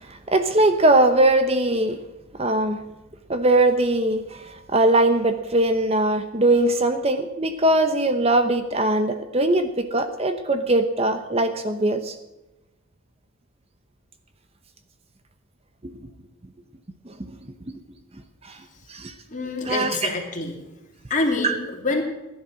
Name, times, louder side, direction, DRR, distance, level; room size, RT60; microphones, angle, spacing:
voice 1, 0.3-2.0 2.4-2.8 3.3-4.2 4.7-12.1 18.9-19.1 19.7-20.0 21.4-21.6, right 1 dB, 30° right, 8 dB, 0.8 m, -20 dB
voice 2, 19.3-20.5 21.1-22.0, left 2 dB, 35° left, 1 dB, 2.7 m, -26 dB
15.5 x 10.5 x 6.2 m, 1.0 s
head